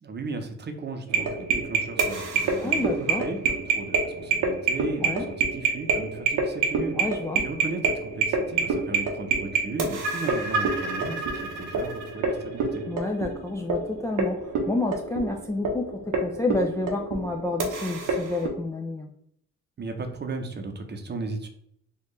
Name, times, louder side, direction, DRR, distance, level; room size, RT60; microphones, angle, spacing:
voice 1, 0.0-7.0 7.4-12.9 19.8-21.5, right 3 dB, 35° right, 5 dB, 0.7 m, -35 dB
sound 1, 1.1-18.5, right 4 dB, 85° right, 0.9 m, -27 dB
voice 2, 2.6-3.3 5.0-5.3 6.9-7.4 12.9-19.1, left 2 dB, 10° left, 3 dB, 0.3 m, -29 dB
4.4 x 2.4 x 3.1 m, 0.72 s
cardioid pair, 90°, 30 cm